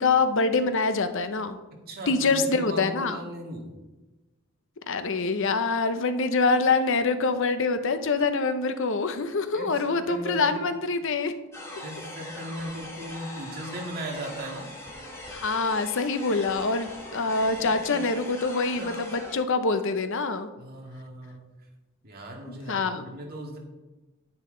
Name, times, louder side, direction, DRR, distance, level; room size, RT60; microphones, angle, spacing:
voice 1, 0.0-1.6 2.1-3.2 4.9-11.3 15.3-20.5 22.5-23.0, left 4 dB, 65° left, 10 dB, 0.7 m, -25 dB
voice 2, 1.7-3.7 9.5-10.7 11.8-14.7 17.6-18.1 18.7-19.0 20.6-21.7 22.0-23.6, right 1 dB, 45° right, 0 dB, 2.0 m, -38 dB
sound 1, 11.5-19.3, left 1 dB, 15° left, 2.6 m, -41 dB
9.9 x 9.6 x 3.9 m, 1.1 s
head